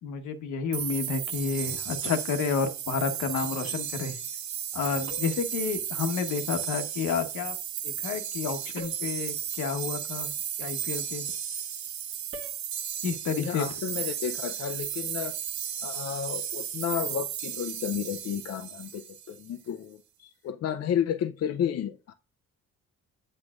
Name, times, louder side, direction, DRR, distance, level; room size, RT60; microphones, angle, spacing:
voice 1, 0.0-4.2 4.7-7.6 7.8-10.3 10.6-11.2 13.0-13.6, left 5 dB, 80° left, 1.1 m, -30 dB
sound 1, 0.7-19.4, right 9 dB, 70° right, 0.9 m, -34 dB
sound 2, 5.1-5.6 8.8-9.2 12.3-12.7, right 2 dB, 50° right, 1.2 m, -43 dB
voice 2, 13.4-15.4 15.8-22.1, left 9 dB, 55° left, 0.5 m, -32 dB
7.8 x 7.4 x 2.4 m
cardioid pair, 90°, 30 cm